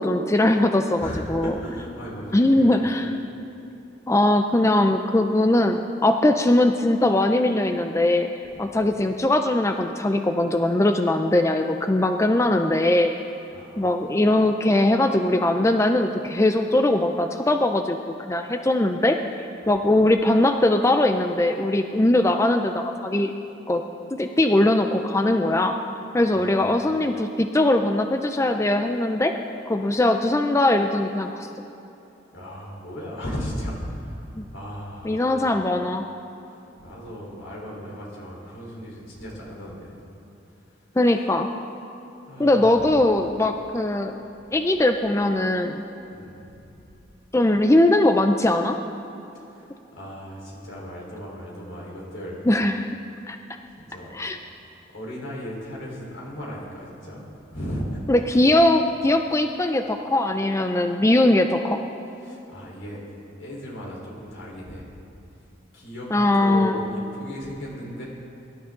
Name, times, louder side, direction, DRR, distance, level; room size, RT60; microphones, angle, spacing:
voice 1, 0.0-1.5 2.3-3.1 4.1-8.3 8.6-13.1 13.8-19.2 19.7-23.3 23.7-23.8 24.2-25.8 26.1-29.3 29.7-31.5 34.4-34.5 35.0-36.0 41.0-41.5 42.4-44.1 44.5-45.8 47.3-48.8 52.5-53.0 53.3-53.4 54.1-54.4 58.1-61.8 66.1-66.8, left 1 dB, 15° left, 6 dB, 0.4 m, -20 dB
voice 2, 1.0-2.8 8.5-8.8 13.5-13.9 26.3-26.7 32.3-34.2 34.5-35.4 36.8-40.0 42.3-42.9 46.1-46.5 49.5-52.4 53.8-54.2 54.9-57.2 57.5-58.0 62.2-63.0 63.4-64.9 65.7-68.0, equal, 80° left, -3 dB, 4.1 m, -36 dB
22.5 x 12.0 x 3.8 m, 2.9 s
head